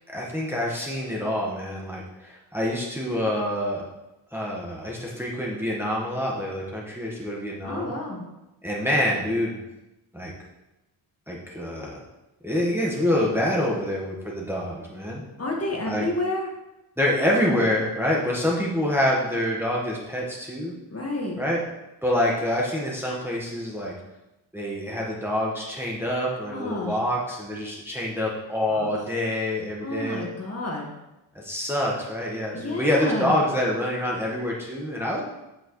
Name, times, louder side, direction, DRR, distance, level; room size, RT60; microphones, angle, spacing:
voice 1, 0.1-3.8 4.3-7.9 8.6-9.6 10.1-10.3 11.3-12.0 12.4-15.2 15.8-16.1 17.0-20.7 21.4-21.6 22.0-23.9 24.5-30.3 31.3-35.2, left 1 dB, 5° right, -4 dB, 1.5 m, -26 dB
voice 2, 7.6-8.2 15.4-16.5 20.9-21.4 26.5-27.0 28.7-28.9 29.8-30.9 32.5-33.4, left 2 dB, 30° left, -2 dB, 1.8 m, -30 dB
7.9 x 6.3 x 3.2 m, 0.98 s
cardioid pair, 70°, 48 cm